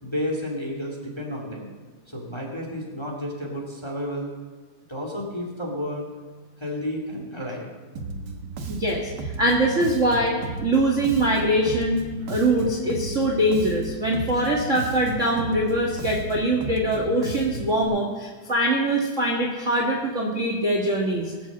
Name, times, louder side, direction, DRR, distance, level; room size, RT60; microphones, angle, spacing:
voice 1, 0.0-1.7 2.1-4.3 4.9-6.1 6.6-7.7, left 1 dB, 10° left, 0 dB, 2.1 m, -31 dB
Bass guitar, 8.0-17.8, right 3 dB, 55° right, 1.2 m, -34 dB
voice 2, 8.7-9.1 9.4-21.3, right 1 dB, 35° right, -1 dB, 1.4 m, -23 dB
20.0 x 7.3 x 7.4 m, 1.4 s
omnidirectional pair, 3.5 m